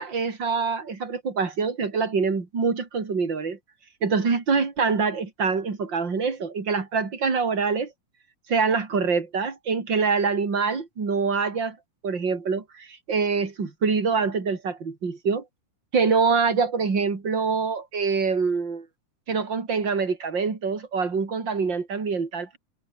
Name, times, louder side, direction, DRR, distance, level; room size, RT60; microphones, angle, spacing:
voice 1, 0.0-3.6 4.0-7.9 8.5-11.8 12.0-15.4 15.9-18.9 19.3-22.6, right 5 dB, 35° right, 4.2 m, -25 dB
omnidirectional pair, 3.7 m